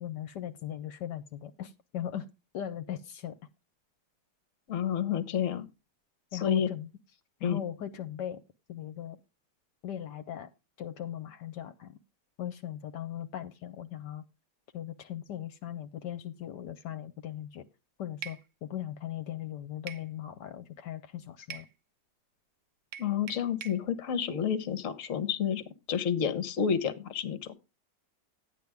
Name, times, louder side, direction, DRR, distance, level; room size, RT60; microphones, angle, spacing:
voice 1, 0.0-2.3 2.5-3.4 6.3-6.9 7.4-8.4 8.7-9.2 9.8-10.5 10.8-12.0 12.4-14.2 14.7-17.7 18.0-21.7, left 10 dB, 75° left, 10 dB, 1.3 m, -39 dB
voice 2, 4.7-5.7 6.3-6.7 7.4-7.6 23.0-27.6, left 8 dB, 50° left, 11 dB, 1.3 m, -30 dB
sound 1, 18.2-18.4 19.9-20.1 21.5-21.7 22.9-23.8, right 8 dB, 80° right, 1.6 m, -42 dB
12.0 x 9.3 x 3.4 m, 0.26 s
omnidirectional pair, 1.9 m